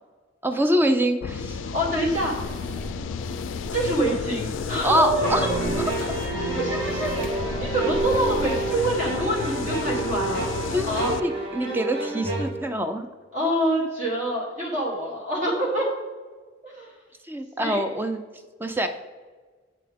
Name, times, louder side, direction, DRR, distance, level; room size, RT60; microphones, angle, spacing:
voice 1, 0.4-1.6 4.8-5.6 6.0-6.1 10.7-13.1 17.3-18.2 18.6-18.9, equal, 10° right, 7 dB, 0.4 m, -25 dB
sound 1, 1.2-11.2, left 6 dB, 75° left, 0.3 m, -32 dB
voice 2, 1.6-2.6 3.7-5.3 6.5-10.5 10.8-11.1 13.3-15.9 16.6-16.9 17.6-17.8, right 1 dB, 40° right, -4 dB, 1.4 m, -26 dB
sound 2, 2.1-8.9, left 1 dB, 5° left, 1.0 m, -39 dB
sound 3, 5.2-12.5, right 3 dB, 60° right, 2.1 m, -29 dB
7.5 x 5.6 x 3.5 m, 1.4 s
head